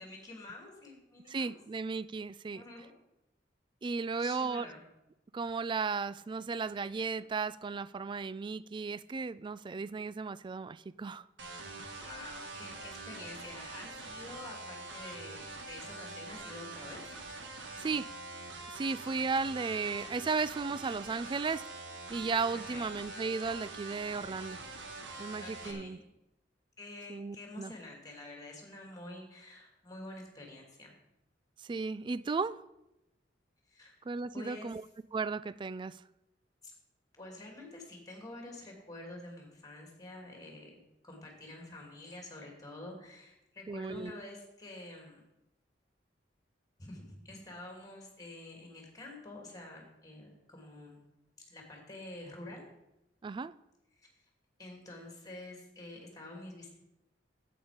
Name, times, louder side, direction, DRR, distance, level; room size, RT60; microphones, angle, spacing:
voice 1, 0.0-1.5 2.5-2.9 4.1-4.8 12.0-17.0 22.5-23.0 25.4-26.0 26.8-30.9 33.7-34.0 34.3-34.7 36.6-36.7 37.1-40.8 41.0-45.2 46.8-51.0 51.5-52.6 54.0-54.1 54.6-56.7, left 2 dB, 20° left, 2.8 m, -48 dB
voice 2, 1.3-2.6 3.8-4.7 5.3-11.3 11.8-11.9 17.8-18.1 18.7-21.6 22.1-24.6 25.2-26.0 27.1-27.7 31.6-32.6 34.1-34.8 35.1-36.0 43.7-44.2 53.2-53.5, right 4 dB, 25° right, 0.3 m, -35 dB
sound 1, 11.4-25.7, right 3 dB, 80° right, 1.7 m, -45 dB
11.0 x 8.7 x 5.1 m
head